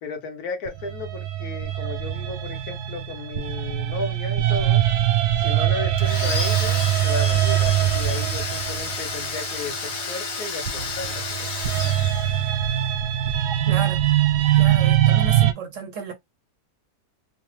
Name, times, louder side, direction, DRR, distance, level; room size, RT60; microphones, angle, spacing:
voice 1, 0.0-4.8 5.4-11.6, left 4 dB, 70° left, 1.3 m, -34 dB
sound 1, 0.7-9.8 10.7-15.5, right 12 dB, 85° right, 1.2 m, -22 dB
Domestic sounds home sounds, 6.0-12.8, left 3 dB, 45° left, 1.3 m, -31 dB
voice 2, 13.7-14.0 14.5-16.1, right 5 dB, 65° right, 0.8 m, -32 dB
3.1 x 2.0 x 3.0 m
omnidirectional pair, 1.7 m